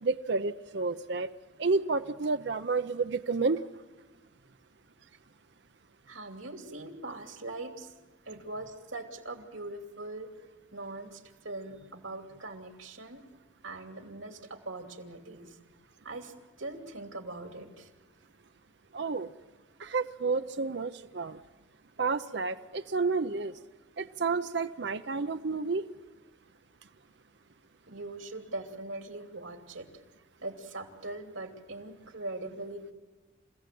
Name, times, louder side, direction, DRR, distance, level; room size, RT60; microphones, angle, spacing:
voice 1, 0.0-1.3 1.6-3.6 18.9-19.3 19.8-21.4 22.0-23.5 24.0-25.8, right 4 dB, 60° right, 9 dB, 0.6 m, -30 dB
voice 2, 6.1-7.9 8.2-10.3 10.7-13.2 13.6-15.6 16.0-17.9 27.9-30.0 30.4-32.9, right 2 dB, 85° right, 4 dB, 2.8 m, -41 dB
29.5 x 16.5 x 7.7 m, 1.3 s
head